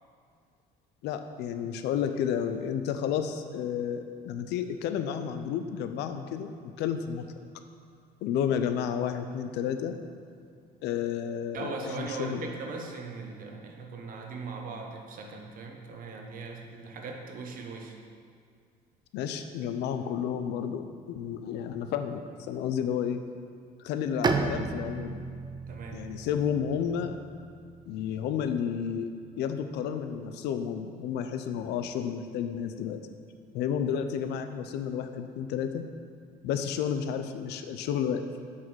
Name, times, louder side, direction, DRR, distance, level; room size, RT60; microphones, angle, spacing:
voice 1, 1.0-7.2 8.2-10.0 10.8-12.5 19.1-22.2 22.5-23.2 23.8-25.2 25.9-27.2 27.9-29.1 29.4-33.0 33.5-35.8 36.4-38.2, left 8 dB, 85° left, 8 dB, 0.6 m, -31 dB
voice 2, 11.5-18.0 25.7-26.1, right 4 dB, 55° right, 2 dB, 1.1 m, -39 dB
Bowed string instrument, 24.2-27.9, right 4 dB, 25° right, 0.5 m, -33 dB
7.4 x 4.2 x 6.2 m, 2.2 s
cardioid pair, 110°, 17 cm